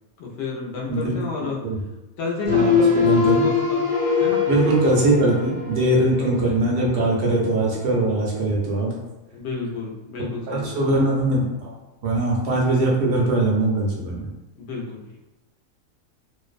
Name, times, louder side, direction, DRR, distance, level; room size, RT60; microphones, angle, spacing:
voice 1, 0.2-1.6 2.2-3.8 4.2-4.4 6.2-6.6 9.3-11.1 14.6-15.2, left 3 dB, 65° left, -1 dB, 0.7 m, -31 dB
sound 1, 2.4-6.4 6.8-7.0, left 6 dB, 30° left, 0.8 m, -22 dB
voice 2, 2.5-3.4 4.5-8.9 10.5-11.7 12.0-14.3, right 2 dB, 65° right, -3 dB, 0.7 m, -21 dB
2.5 x 2.1 x 2.4 m, 1.0 s
omnidirectional pair, 1.4 m